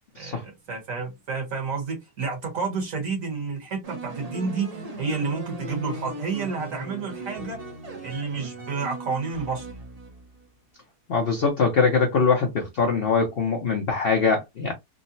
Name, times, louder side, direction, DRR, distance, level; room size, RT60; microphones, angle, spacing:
voice 1, 0.2-4.7 5.0-7.6 8.0-9.7, right 4 dB, 55° right, 1.4 m, -30 dB
sound 1, 3.8-10.5, right 2 dB, 40° right, 0.5 m, -38 dB
voice 2, 11.1-14.7, left 5 dB, 65° left, 0.6 m, -22 dB
3.7 x 2.0 x 2.6 m
omnidirectional pair, 1.8 m